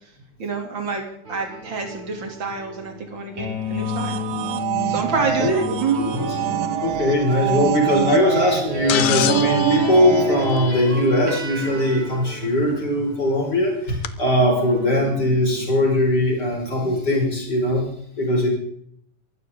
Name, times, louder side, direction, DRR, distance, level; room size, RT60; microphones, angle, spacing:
voice 1, 0.4-1.0 1.3-4.2 4.9-6.1, right 5 dB, 35° right, 3 dB, 3.4 m, -27 dB
sound 1, 1.3-13.8 14.3-17.2, right 2 dB, 60° right, 6.0 m, -30 dB
sound 2, 3.6-11.0, right 10 dB, 75° right, 2.2 m, -27 dB
voice 2, 6.8-17.8 18.2-18.5, left 1 dB, 30° left, -1 dB, 6.0 m, -20 dB
sound 3, 8.9-11.2 12.8-12.9 14.0-14.1, left 12 dB, 70° left, 1.7 m, -27 dB
23.5 x 13.5 x 3.9 m, 0.67 s
omnidirectional pair, 3.7 m